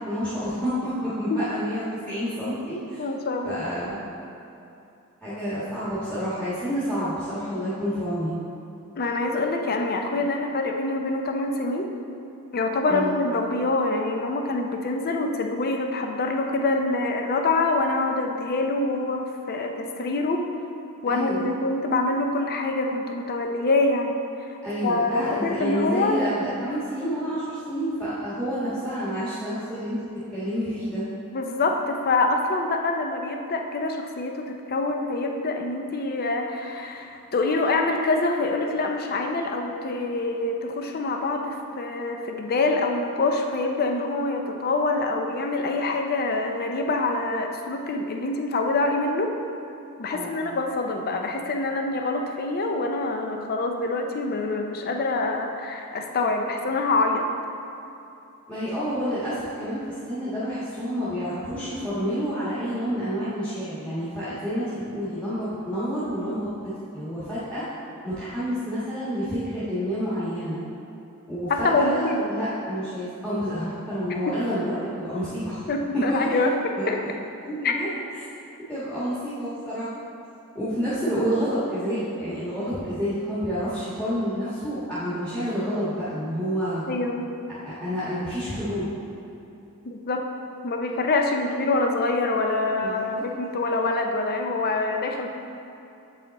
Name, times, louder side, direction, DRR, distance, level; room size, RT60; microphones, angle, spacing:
voice 1, 0.0-3.0 3.4-4.0 5.2-8.3 12.9-13.1 21.0-21.5 24.6-30.0 30.3-31.0 50.1-50.4 58.5-59.8 60.1-66.5 66.9-67.6 68.0-70.6 71.3-74.7 75.0-75.6 76.1-76.4 76.8-76.9 77.4-77.9 78.7-79.9 80.5-86.8 87.5-88.9 92.8-93.2, equal, 5° left, -14 dB, 1.5 m, -29 dB
voice 2, 3.0-3.6 9.0-11.9 12.5-20.4 21.0-24.2 24.5-26.2 31.3-49.3 50.0-57.3 71.5-72.3 74.3-74.4 75.7-77.0 77.6-77.7 86.9-87.3 89.8-90.2 90.6-95.3, left 2 dB, 45° left, 3 dB, 0.5 m, -25 dB
7.8 x 5.6 x 4.1 m, 2.8 s
head